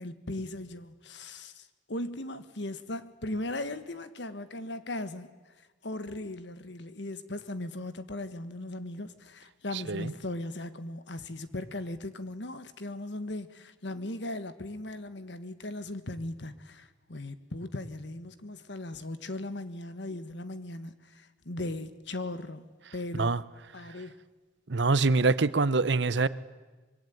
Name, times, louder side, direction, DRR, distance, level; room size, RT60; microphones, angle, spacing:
voice 1, 0.0-5.3 5.8-22.6 22.9-23.3 23.7-24.2, left 1 dB, 65° left, 1.6 m, -38 dB
voice 2, 24.7-26.3, right 3 dB, 65° right, 0.8 m, -24 dB
25.5 x 22.5 x 9.3 m
head